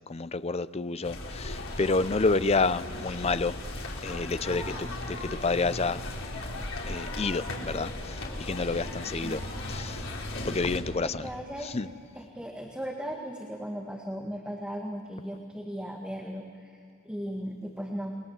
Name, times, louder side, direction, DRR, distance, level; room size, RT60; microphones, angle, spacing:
voice 1, 0.0-3.6 4.0-6.0 6.8-9.4 9.7-10.0 10.4-11.3 11.6-11.9, left 3 dB, 30° left, 15 dB, 0.5 m, -29 dB
sound 1, 1.0-10.8, left 1 dB, 75° left, 3.9 m, -37 dB
voice 2, 4.5-4.9 9.1-9.4 11.0-11.8 12.2-16.8 17.0-18.2, equal, 5° right, 0 dB, 1.7 m, -37 dB
29.0 x 22.0 x 7.3 m, 2.4 s
head